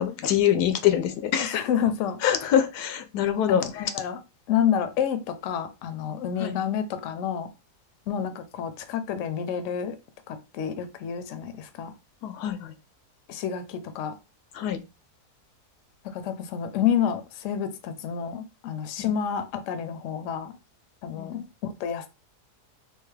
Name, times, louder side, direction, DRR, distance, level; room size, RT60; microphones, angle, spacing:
voice 1, 0.0-1.6 2.2-3.9 6.4-6.6 12.2-12.7 14.5-14.8 19.0-19.1 21.2-21.4, left 10 dB, 85° left, 1.2 m, -25 dB
voice 2, 1.5-2.2 3.8-4.2 4.5-7.5 8.1-10.0 10.3-11.9 13.3-14.2 16.0-20.6 21.0-22.1, left 8 dB, 65° left, 0.8 m, -29 dB
3.6 x 2.8 x 3.2 m
omnidirectional pair, 1.7 m